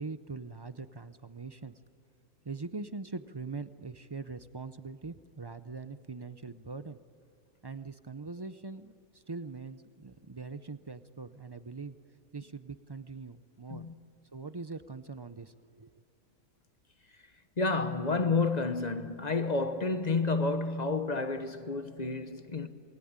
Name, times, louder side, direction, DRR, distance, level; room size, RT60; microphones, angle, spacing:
voice 1, 0.0-1.7 2.4-7.0 7.6-12.0 12.3-13.9 14.3-15.9, right 4 dB, 40° right, 0.3 m, -42 dB
voice 2, 17.6-22.7, left 3 dB, 30° left, 1.1 m, -30 dB
28.0 x 21.0 x 8.8 m
omnidirectional pair, 1.5 m